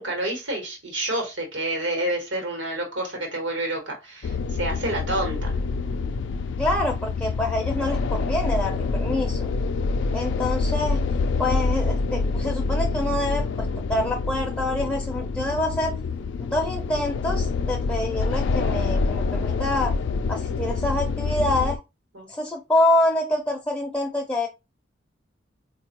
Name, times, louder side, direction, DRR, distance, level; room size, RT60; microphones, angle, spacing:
voice 1, 0.0-5.5 22.1-22.3, right 1 dB, 80° right, 1.1 m, -29 dB
sound 1, 4.2-21.8, left 4 dB, 75° left, 0.3 m, -26 dB
voice 2, 6.6-9.5 10.1-11.0 11.4-15.9 16.4-19.9 20.3-21.8 22.3-24.5, left 1 dB, 5° left, 0.5 m, -26 dB
4.2 x 2.2 x 2.8 m
head